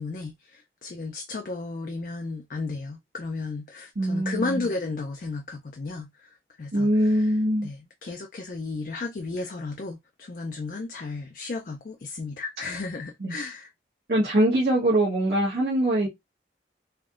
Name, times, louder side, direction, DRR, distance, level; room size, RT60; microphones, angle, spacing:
voice 1, 0.0-7.3 7.6-13.7, left 3 dB, 50° left, 0.4 m, -34 dB
voice 2, 4.0-4.7 6.7-7.7 13.2-13.3 14.1-16.1, right 1 dB, 70° right, 1.1 m, -23 dB
3.3 x 2.6 x 2.4 m
head